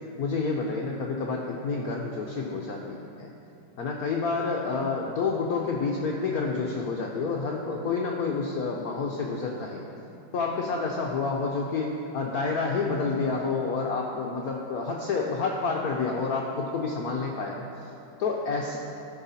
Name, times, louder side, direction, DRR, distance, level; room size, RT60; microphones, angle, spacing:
voice 1, 0.2-3.3 3.8-9.9 10.3-17.9 18.2-18.8, left 4 dB, 65° left, -1 dB, 0.9 m, -29 dB
14.0 x 6.2 x 4.1 m, 2.8 s
omnidirectional pair, 2.3 m